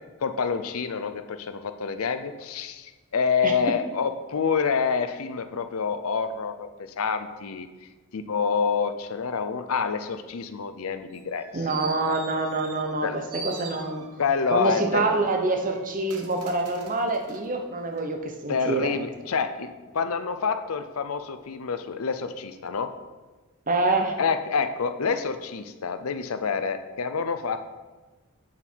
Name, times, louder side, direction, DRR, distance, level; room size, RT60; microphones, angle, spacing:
voice 1, 0.2-7.7 8.1-11.5 13.0-13.2 14.2-15.0 18.5-19.7 19.9-22.9 24.2-27.6, left 5 dB, 65° left, 10 dB, 0.6 m, -27 dB
voice 2, 3.4-3.7 11.5-14.0 14.5-18.9 23.7-24.1, right 2 dB, 35° right, 4 dB, 1.0 m, -26 dB
sound 1, 11.1-13.0 13.3-14.3 14.8-17.5 17.9-18.0, right 4 dB, 80° right, 1.2 m, -43 dB
8.0 x 7.3 x 4.6 m, 1.3 s
head